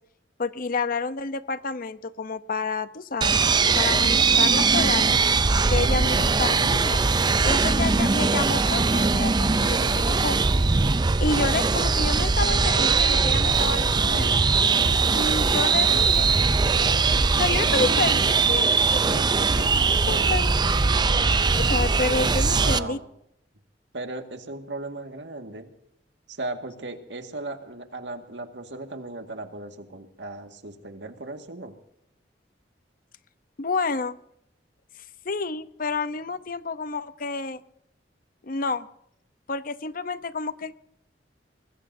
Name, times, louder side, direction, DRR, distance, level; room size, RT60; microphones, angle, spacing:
voice 1, 0.4-3.4 3.8-5.2 5.7-7.0 7.4-10.4 11.2-14.4 15.1-16.3 17.3-19.8 20.1-20.6 21.5-23.0 33.6-34.2 35.2-37.6 38.4-38.9 39.5-40.8, left 3 dB, 50° left, 13 dB, 0.8 m, -29 dB
sound 1, 3.2-22.8, right 4 dB, 25° right, 0.5 m, -21 dB
voice 2, 5.8-6.4 22.6-23.0 23.9-25.7 26.3-31.8, right 2 dB, 85° right, 6 dB, 1.9 m, -36 dB
sound 2, 5.9-14.3, equal, 60° right, 5.0 m, -46 dB
24.5 x 21.0 x 2.7 m, 0.75 s
head